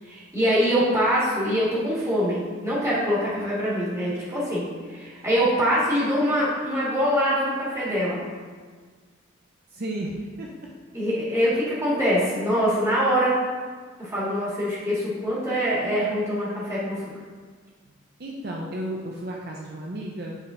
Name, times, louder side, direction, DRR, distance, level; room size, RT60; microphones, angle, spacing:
voice 1, 0.0-8.2 10.9-13.4 14.0-17.1, equal, 15° right, -8 dB, 1.8 m, -24 dB
voice 2, 9.7-10.7 18.2-20.4, right 1 dB, 50° right, -2 dB, 0.6 m, -33 dB
8.1 x 3.8 x 3.8 m, 1.5 s
head